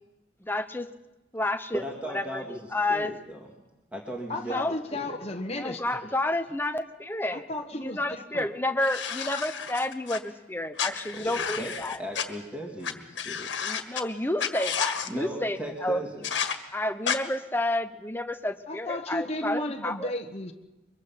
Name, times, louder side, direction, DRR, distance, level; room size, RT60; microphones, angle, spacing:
voice 1, 0.4-0.9 1.3-1.8 2.1-3.1 4.5-4.8 5.5-7.4 7.8-12.0 13.6-16.0 16.7-20.1, left 1 dB, 10° left, 9 dB, 0.9 m, -30 dB
voice 2, 1.7-3.5 3.9-4.6 4.9-5.2 11.1-11.7 12.0-13.5 15.1-16.3, right 1 dB, 10° right, -1 dB, 2.2 m, -37 dB
voice 3, 4.3-6.1 7.3-8.5 18.7-20.5, left 1 dB, 35° left, 3 dB, 1.4 m, -34 dB
sound 1, 8.8-10.2 10.8-12.2 12.8-12.9 13.2-14.0 14.4-15.1 16.2-16.5 17.0-17.2, left 7 dB, 85° left, 1.7 m, -31 dB
23.5 x 22.5 x 5.8 m, 1.0 s
head